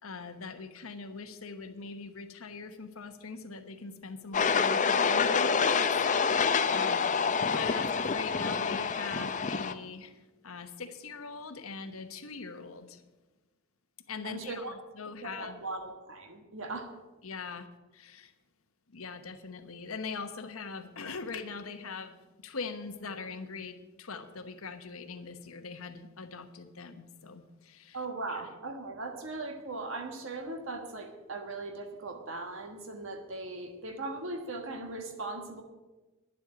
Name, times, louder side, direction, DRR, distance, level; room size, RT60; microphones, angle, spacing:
voice 1, 0.0-5.9 6.3-7.0 7.3-13.0 14.1-15.6 17.2-17.7 17.9-18.3 18.9-28.0 28.3-28.5, left 4 dB, 80° left, 8 dB, 1.1 m, -42 dB
sound 1, 4.3-9.7, left 5 dB, 35° left, 0.6 m, -27 dB
voice 2, 7.5-7.9 14.2-14.7 15.2-16.9 27.9-35.6, right 2 dB, 65° right, 5 dB, 1.3 m, -39 dB
11.0 x 7.9 x 8.9 m, 1.2 s
head